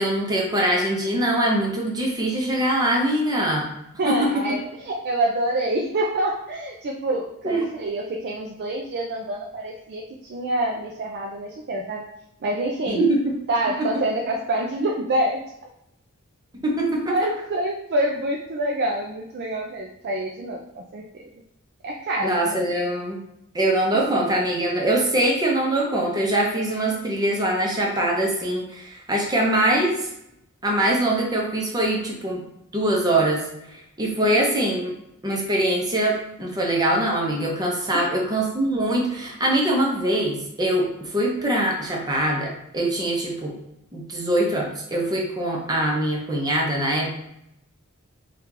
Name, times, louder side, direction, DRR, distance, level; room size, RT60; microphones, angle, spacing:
voice 1, 0.0-3.7 4.1-4.6 7.4-7.6 12.9-13.4 13.8-13.9 16.6-17.1 22.2-23.2 23.5-30.1 30.6-32.4 32.7-33.5 34.0-34.9 35.2-43.6 43.9-47.1, right 1 dB, 20° right, -1 dB, 0.7 m, -23 dB
voice 2, 4.0-12.0 12.4-13.0 13.5-15.4 17.1-21.2 21.8-22.6 34.2-34.6 37.9-38.1, right 1 dB, 50° right, 0 dB, 0.4 m, -27 dB
2.8 x 2.4 x 3.7 m, 0.81 s
head